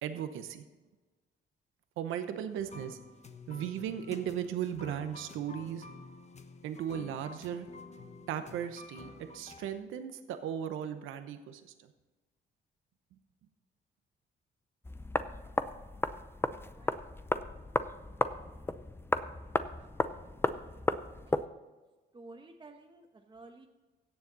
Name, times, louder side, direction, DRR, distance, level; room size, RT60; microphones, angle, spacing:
voice 1, 0.0-0.6 2.0-3.0 3.5-5.8 6.6-7.7 8.3-11.6, right 9 dB, 90° right, 9 dB, 0.9 m, -36 dB
sound 1, 2.5-9.8, left 3 dB, 35° left, 1.2 m, -50 dB
sound 2, 14.8-21.5, left 2 dB, 10° left, 0.6 m, -34 dB
voice 2, 16.7-17.1 19.8-19.9 20.2-21.5 22.1-23.7, right 2 dB, 25° right, 2 dB, 1.2 m, -54 dB
16.5 x 7.2 x 4.0 m, 1.2 s
cardioid pair, 90°, 20 cm